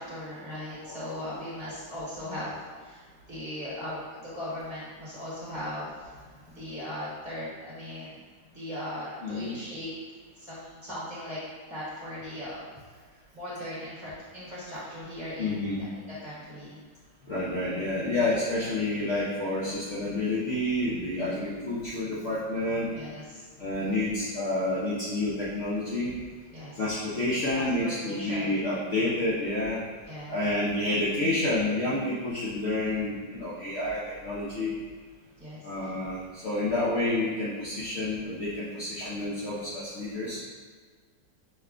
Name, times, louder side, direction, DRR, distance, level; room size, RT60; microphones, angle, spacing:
voice 1, 0.0-3.0 3.3-6.1 6.5-8.2 8.5-9.9 10.4-11.4 11.7-12.6 13.3-15.8 16.2-16.8 22.9-23.4 26.5-26.8 27.5-28.5 30.1-30.4 35.4-35.9, left 1 dB, 30° right, -9 dB, 1.2 m, -38 dB
voice 2, 0.8-1.3 9.2-9.6 15.4-15.8 17.3-22.9 23.6-26.1 26.8-29.8 30.3-34.7 35.6-40.4, left 2 dB, 55° left, -8 dB, 0.9 m, -29 dB
5.5 x 2.3 x 3.7 m, 1.5 s
omnidirectional pair, 1.9 m